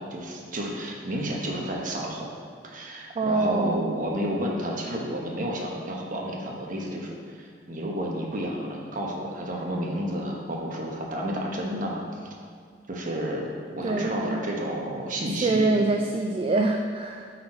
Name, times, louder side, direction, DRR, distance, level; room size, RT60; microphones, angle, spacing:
voice 1, 0.0-2.3 2.6-12.3 12.9-15.7, equal, 45° right, -1 dB, 1.1 m, -31 dB
voice 2, 3.2-3.9 13.8-14.4 15.3-17.3, right 2 dB, 30° right, 3 dB, 0.3 m, -25 dB
8.5 x 4.2 x 4.3 m, 2.2 s
head